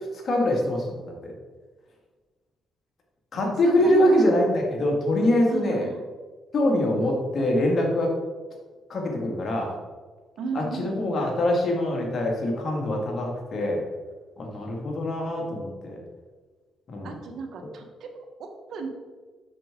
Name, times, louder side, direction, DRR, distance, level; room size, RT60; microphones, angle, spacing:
voice 1, 0.1-1.3 3.3-5.9 6.5-8.1 8.9-9.7 10.5-13.8 14.4-16.0 16.9-17.1, left 1 dB, 50° left, 0 dB, 2.0 m, -24 dB
voice 2, 3.3-4.2 5.5-6.0 10.4-11.2 17.0-18.9, right 4 dB, 70° right, 5 dB, 1.1 m, -34 dB
7.6 x 6.1 x 3.7 m, 1.4 s
cardioid pair, 90°, 0 cm